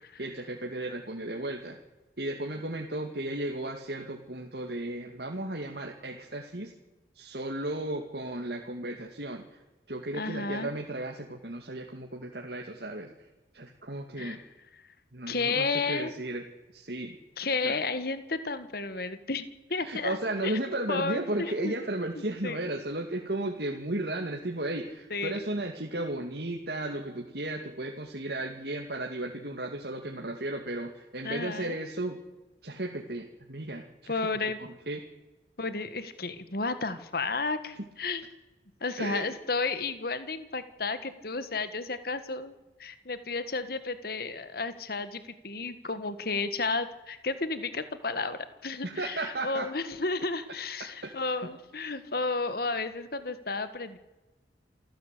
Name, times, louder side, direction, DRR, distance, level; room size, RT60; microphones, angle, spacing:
voice 1, 0.2-1.8 2.2-6.7 7.1-9.6 9.9-13.1 13.5-14.4 15.1-16.4 16.7-17.2 17.6-17.8 19.8-32.2 32.6-34.1 34.6-35.0 39.0-39.3 48.8-49.7 51.0-51.1 51.4-51.5, right 1 dB, 60° right, 1 dB, 2.3 m, -34 dB
voice 2, 10.1-10.7 14.2-14.4 15.3-16.1 17.4-20.6 20.9-21.7 22.4-22.6 25.1-25.4 31.2-31.8 34.1-34.6 35.6-38.2 38.8-54.0, left 3 dB, 55° left, 12 dB, 1.7 m, -32 dB
28.0 x 15.5 x 8.4 m, 1.1 s
head